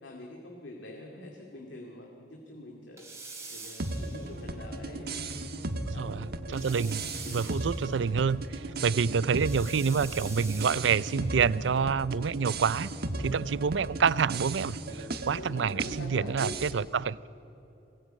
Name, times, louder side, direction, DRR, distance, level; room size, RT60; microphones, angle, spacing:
voice 1, 0.0-3.1 3.5-5.4 5.9-6.1 6.5-6.7 7.2-7.4 13.1-13.4 15.3-16.6, left 2 dB, 80° left, 2.3 m, -45 dB
sound 1, 3.0-4.5 6.5-8.2 9.4-11.4, right 3 dB, 15° right, 3.1 m, -45 dB
sound 2, 3.8-16.7, right 2 dB, 55° right, 1.4 m, -36 dB
voice 2, 5.9-7.0 7.3-12.9 13.2-17.3, right 6 dB, 75° right, 0.5 m, -28 dB
21.5 x 18.5 x 9.1 m
head